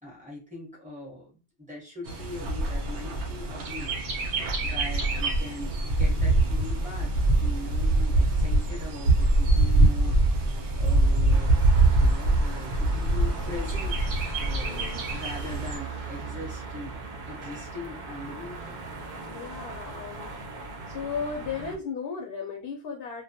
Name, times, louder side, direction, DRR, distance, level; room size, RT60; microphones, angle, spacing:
voice 1, 0.0-4.3 4.6-11.7 12.0-16.9 17.2-18.9, left 2 dB, 10° right, -4 dB, 0.8 m, -41 dB
Bird, 2.1-15.8, right 2 dB, 80° right, 0.9 m, -24 dB
sound 1, 11.3-21.8, right 3 dB, 55° right, 0.5 m, -39 dB
voice 2, 14.6-15.0 19.3-20.3 20.9-23.2, left 5 dB, 65° left, 2 dB, 0.7 m, -35 dB
2.2 x 2.1 x 2.7 m, 0.31 s
omnidirectional pair, 1.1 m